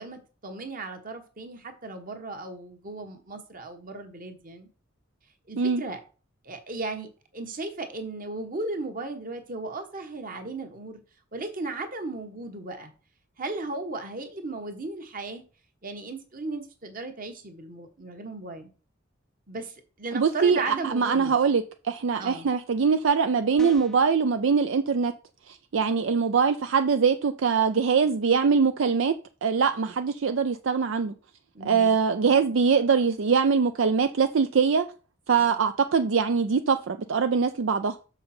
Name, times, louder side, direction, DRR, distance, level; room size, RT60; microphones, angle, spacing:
voice 1, 0.0-4.7 5.5-6.0 6.4-11.0 11.3-12.9 13.4-15.4 15.8-18.7 19.5-21.3 22.2-22.5 31.5-32.0 35.4-35.5, right 3 dB, 45° right, 1.3 m, -36 dB
voice 2, 20.1-25.1 25.5-29.1 29.4-31.1 31.6-34.9 35.3-38.0, right 5 dB, 70° right, 0.5 m, -23 dB
sound 1, 23.6-24.1, equal, 5° left, 0.5 m, -41 dB
6.6 x 5.6 x 4.4 m
head